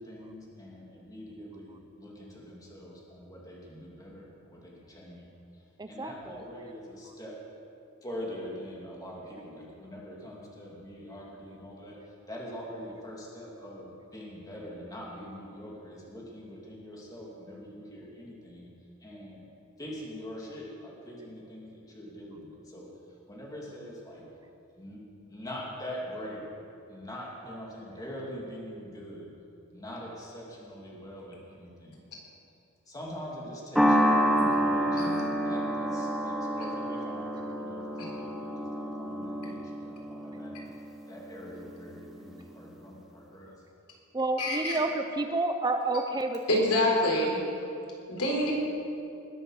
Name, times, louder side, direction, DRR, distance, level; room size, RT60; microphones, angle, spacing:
voice 1, 0.0-5.3 5.9-7.4 8.0-12.0 12.3-18.7 19.0-19.5 19.8-24.3 24.8-25.0 25.3-26.5 26.9-29.3 29.7-32.0 32.9-35.1 35.4-40.5 41.1-43.5, equal, 15° left, -4 dB, 2.6 m, -43 dB
voice 2, 5.8-6.4 44.1-47.3, right 2 dB, 20° right, 7 dB, 0.5 m, -30 dB
sound 1, 33.8-42.3, equal, ahead, 0.9 m, -29 dB
voice 3, 44.4-44.7 46.5-47.4 48.1-48.5, left 1 dB, 85° left, -2 dB, 3.8 m, -27 dB
20.5 x 7.7 x 6.5 m, 2.7 s
head